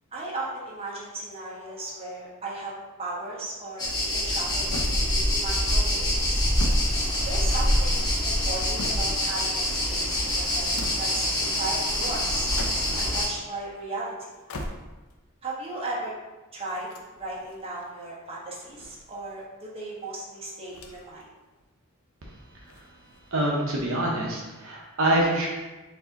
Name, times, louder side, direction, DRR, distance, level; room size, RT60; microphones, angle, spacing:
voice 1, 0.1-6.5 7.2-10.7 11.0-12.5 13.0-14.1 15.4-16.1 16.5-16.9 17.2-21.3, right 2 dB, 25° right, -5 dB, 0.9 m, -36 dB
sound 1, 3.8-13.3, left 1 dB, 20° left, 1.0 m, -25 dB
sound 2, 4.7-5.5 6.3-7.7 8.3-9.4 10.5-11.2 12.3-13.1 14.3-15.2 16.7-17.6 18.5-19.5 20.7-21.2 21.6-21.7 22.6-23.4, left 1 dB, 70° left, 0.5 m, -39 dB
voice 2, 23.3-25.5, right 1 dB, 65° right, -2 dB, 0.7 m, -25 dB
4.6 x 2.7 x 3.9 m, 1.1 s
head